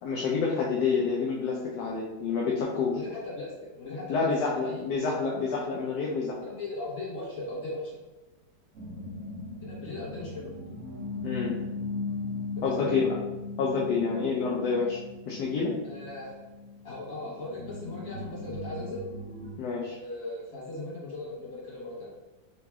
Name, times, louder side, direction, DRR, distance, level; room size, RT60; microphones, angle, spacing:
voice 1, 0.0-3.0 4.1-6.4 11.2-11.6 12.6-13.0 13.6-15.0 15.3-15.7 19.6-20.0, left 5 dB, 70° left, -3 dB, 1.1 m, -28 dB
voice 2, 2.9-4.8 6.4-8.0 9.6-10.6 12.6-13.0 15.8-16.4 16.8-19.0 19.9-22.1, left 2 dB, 50° left, -6 dB, 2.1 m, -38 dB
sound 1, 8.7-19.5, left 3 dB, 50° right, 1.2 m, -38 dB
3.8 x 3.0 x 3.4 m, 1.1 s
omnidirectional pair, 2.0 m